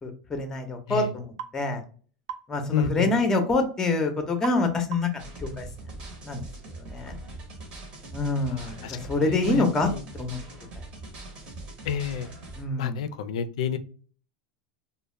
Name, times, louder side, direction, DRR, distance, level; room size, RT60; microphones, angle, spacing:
voice 1, 0.0-1.8 2.5-5.7 6.2-6.4 6.8-7.2 8.1-9.9 10.2-10.4 12.6-13.0, left 2 dB, 15° left, 6 dB, 0.5 m, -26 dB
sound 1, 1.4-1.6 2.3-2.5 4.4-4.7 4.9-5.2, right 9 dB, 65° right, 0.3 m, -36 dB
voice 2, 2.7-3.1 8.5-9.0 9.2-10.0 11.8-12.3 12.8-13.8, left 8 dB, 80° left, 10 dB, 0.3 m, -30 dB
sound 2, 5.2-12.6, right 2 dB, 35° right, 0.8 m, -42 dB
2.2 x 2.1 x 3.0 m, 0.42 s
supercardioid pair, 135°, 3 cm